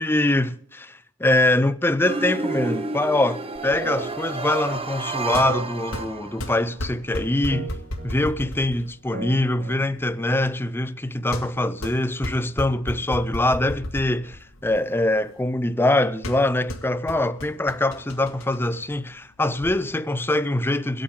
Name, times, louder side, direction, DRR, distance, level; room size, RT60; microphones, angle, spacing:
voice 1, 0.0-7.8 8.0-21.0, left 1 dB, 10° left, 0.5 m, -23 dB
sound 1, 2.0-6.7, right 3 dB, 30° right, 0.8 m, -30 dB
sound 2, 3.5-19.7, left 1 dB, 90° left, 1.6 m, -36 dB
sound 3, 3.8-4.9 5.4-6.8 7.5-8.6 9.1-10.2, right 3 dB, 50° right, 4.4 m, -38 dB
24.0 x 8.7 x 3.7 m
head